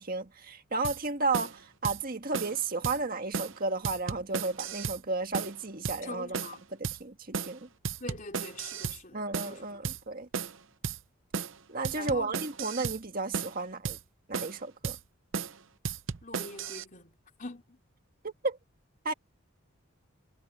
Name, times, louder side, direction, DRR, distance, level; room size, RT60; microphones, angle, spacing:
voice 1, 0.0-6.4 6.8-7.7 9.1-10.3 11.7-14.0 14.3-15.0 18.2-18.6 19.0-19.1, right 3 dB, 40° right, 1.8 m, -33 dB
sound 1, 0.8-1.0 1.3-1.6 1.8-2.0 2.3-2.6 2.8-3.0 3.3-3.6 3.8-5.0 5.3-5.6 5.8-6.0 6.3-6.6 6.8-7.0 7.3-7.6 7.8-9.0 9.3-9.6 9.8-10.0 10.3-10.6 10.8-11.0 11.3-11.6 11.8-13.0 13.3-13.6 13.8-14.0 14.3-14.6 14.8-15.0 15.3-15.6 15.8-16.8, right 6 dB, 60° right, 0.7 m, -34 dB
voice 2, 6.0-6.7 8.0-10.1 11.9-12.4 16.2-17.8, left 2 dB, 40° left, 3.9 m, -44 dB
head